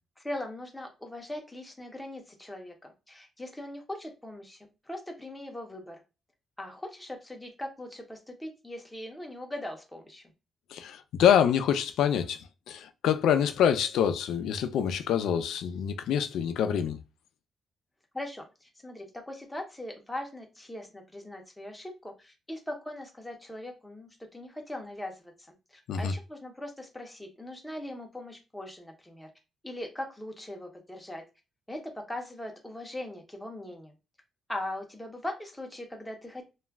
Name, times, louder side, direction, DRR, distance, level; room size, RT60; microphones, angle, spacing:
voice 1, 0.2-6.0 6.6-10.2 18.1-25.3 25.7-29.3 29.6-31.2 31.7-33.9 34.5-36.4, left 1 dB, 5° left, 0.5 m, -40 dB
voice 2, 10.7-17.0 25.9-26.1, left 9 dB, 90° left, 0.3 m, -26 dB
2.2 x 2.1 x 3.3 m
cardioid pair, 170°, 0 cm